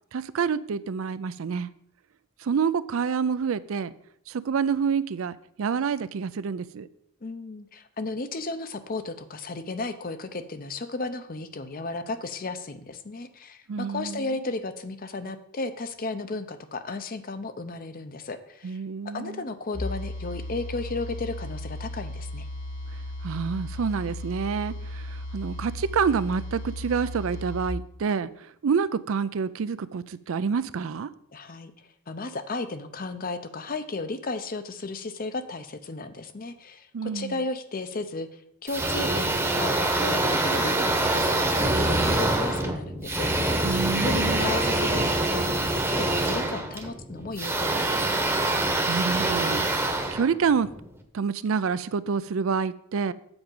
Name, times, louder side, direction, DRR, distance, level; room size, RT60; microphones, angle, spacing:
voice 1, 0.1-1.7 2.4-3.9 4.3-6.9 13.7-14.3 18.6-19.4 23.2-31.1 36.9-37.4 43.6-44.6 48.9-50.7 51.1-53.1, right 6 dB, 65° right, 15 dB, 0.4 m, -28 dB
voice 2, 7.2-18.8 19.1-22.5 31.3-31.7 32.1-43.3 43.9-45.4 45.9-48.2, left 3 dB, 40° left, 10 dB, 0.6 m, -34 dB
sound 1, 19.7-27.7, left 1 dB, 80° left, 3.1 m, -36 dB
sound 2, 38.7-50.9, right 2 dB, 10° right, 0.9 m, -25 dB
8.0 x 5.0 x 7.1 m, 0.71 s
head